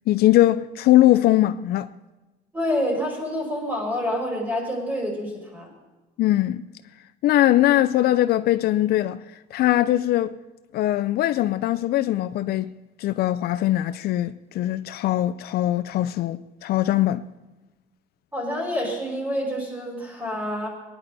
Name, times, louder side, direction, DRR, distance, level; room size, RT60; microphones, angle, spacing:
voice 1, 0.1-1.9 6.2-6.6 7.2-9.2 9.5-10.4 10.7-12.7 13.0-17.2, left 14 dB, 70° left, 0.5 m, -21 dB
voice 2, 2.5-5.7 18.3-20.7, equal, 10° right, 5.6 m, -27 dB
21.5 x 10.0 x 4.1 m
cardioid pair, 110°, 17 cm